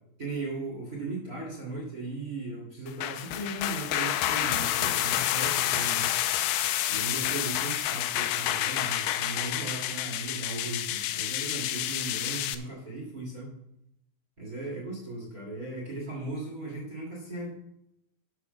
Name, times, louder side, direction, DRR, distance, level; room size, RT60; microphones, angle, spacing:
voice 1, 0.2-6.1 6.9-13.5 14.4-17.5, right 2 dB, 25° right, -2 dB, 2.4 m, -37 dB
sound 1, 2.9-12.5, left 13 dB, 90° left, 2.7 m, -29 dB
13.0 x 11.5 x 2.3 m, 0.79 s
omnidirectional pair, 4.5 m